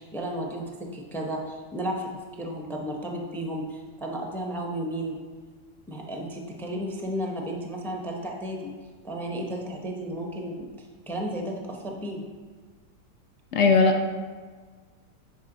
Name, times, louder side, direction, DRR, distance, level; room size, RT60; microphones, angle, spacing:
voice 1, 0.0-5.2 5.9-8.7 9.0-10.6 11.1-12.2, right 1 dB, 5° left, 0 dB, 0.3 m, -33 dB
voice 2, 13.5-14.1, left 4 dB, 65° left, 5 dB, 0.7 m, -19 dB
9.4 x 4.8 x 3.9 m, 1.5 s
omnidirectional pair, 1.8 m